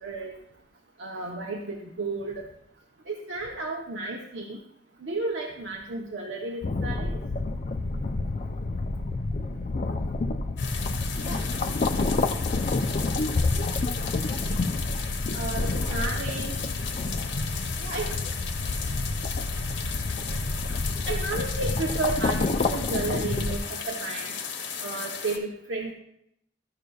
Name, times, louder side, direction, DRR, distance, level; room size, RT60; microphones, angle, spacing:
voice 1, 0.0-0.3 1.0-2.5 3.1-4.6 5.0-7.2 15.3-16.6 17.9-18.1 20.7-20.8 21.1-24.4 24.8-25.9, right 2 dB, 85° right, 0 dB, 0.8 m, -32 dB
sound 1, 6.6-23.6, left 3 dB, 40° left, 0.4 m, -29 dB
sound 2, 10.6-25.4, left 6 dB, 85° left, 0.9 m, -35 dB
voice 2, 11.2-12.3 15.8-16.0 17.8-18.4 21.0-21.2, equal, 70° right, -2 dB, 1.7 m, -44 dB
12.5 x 6.5 x 2.3 m, 0.75 s
head